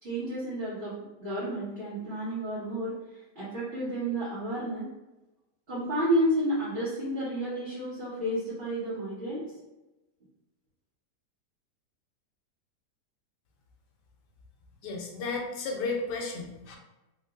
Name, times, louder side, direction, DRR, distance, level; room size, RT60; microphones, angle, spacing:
voice 1, 0.0-4.9 5.7-9.5, right 1 dB, 35° right, -14 dB, 1.7 m, -31 dB
voice 2, 14.8-16.8, left 3 dB, 80° left, 1 dB, 1.3 m, -33 dB
3.5 x 3.1 x 2.3 m, 1.0 s
omnidirectional pair, 1.8 m